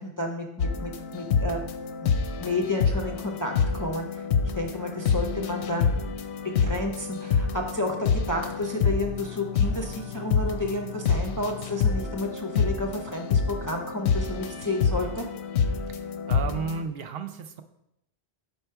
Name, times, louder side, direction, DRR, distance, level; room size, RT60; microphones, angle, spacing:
voice 1, 0.0-1.6 2.4-4.2 4.6-6.0 6.6-8.0 8.3-15.3, left 2 dB, 30° left, 1 dB, 0.3 m, -31 dB
sound 1, 0.6-16.8, left 5 dB, 85° left, 0.9 m, -27 dB
voice 2, 15.9-17.6, right 6 dB, 70° right, 8 dB, 0.7 m, -34 dB
5.6 x 4.7 x 4.5 m, 0.82 s
omnidirectional pair, 1.1 m